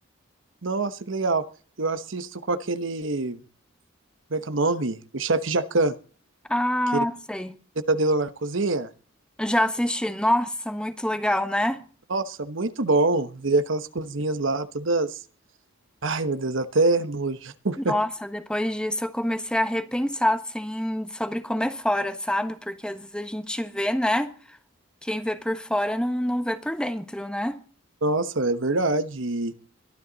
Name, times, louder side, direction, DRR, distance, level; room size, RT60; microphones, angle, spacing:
voice 1, 0.6-1.4 1.8-3.4 4.3-5.9 7.9-8.9 12.1-15.2 16.0-17.9 28.0-29.5, right 2 dB, 70° right, 1.1 m, -25 dB
voice 2, 6.5-7.5 9.4-11.8 17.8-24.6 25.0-27.6, left 1 dB, 5° left, 1.3 m, -26 dB
22.5 x 12.5 x 4.0 m
head